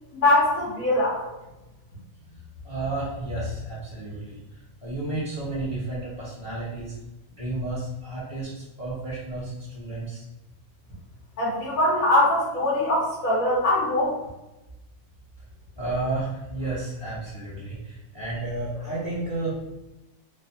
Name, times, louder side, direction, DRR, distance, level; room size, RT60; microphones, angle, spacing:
voice 1, 0.1-1.3 11.4-14.2, left 1 dB, 75° left, -6 dB, 1.5 m, -22 dB
voice 2, 2.6-7.0 7.4-10.2 15.8-19.6, right 2 dB, 25° left, -7 dB, 0.7 m, -32 dB
3.4 x 2.2 x 2.7 m, 0.95 s
omnidirectional pair, 1.5 m